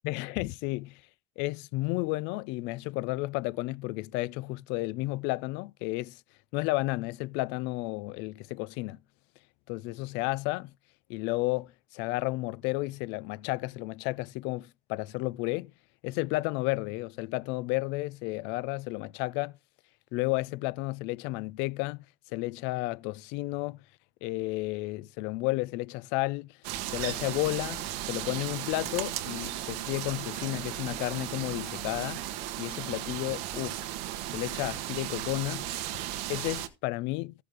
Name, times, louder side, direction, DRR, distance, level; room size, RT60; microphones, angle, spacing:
voice 1, 0.0-1.0 1.4-6.2 6.5-9.0 9.7-10.7 11.1-15.7 16.0-19.5 20.1-22.0 22.3-23.8 24.2-26.6 26.9-32.2 32.6-33.8 34.3-35.7 36.3-37.3, left 21 dB, 65° left, 0.5 m, -32 dB
sound 1, 26.6-36.7, right 13 dB, 90° right, 1.6 m, -36 dB
14.5 x 6.7 x 3.7 m
cardioid pair, 155°, 20 cm